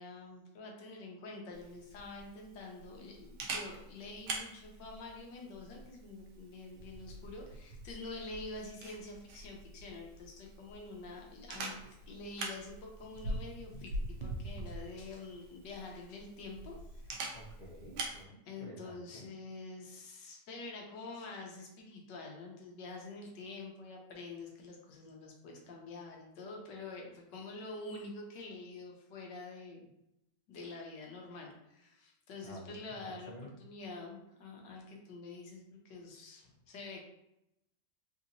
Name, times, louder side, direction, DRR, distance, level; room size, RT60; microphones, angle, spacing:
voice 1, 0.0-13.9 14.2-17.3 18.5-29.8 30.5-37.0, left 3 dB, 80° left, 0 dB, 1.4 m, -47 dB
Camera, 1.5-18.2, right 2 dB, 75° right, 1.2 m, -44 dB
voice 2, 17.3-19.3 32.4-32.8 33.3-33.5, equal, 45° left, -5 dB, 0.6 m, -50 dB
3.8 x 2.8 x 2.6 m, 0.85 s
omnidirectional pair, 1.9 m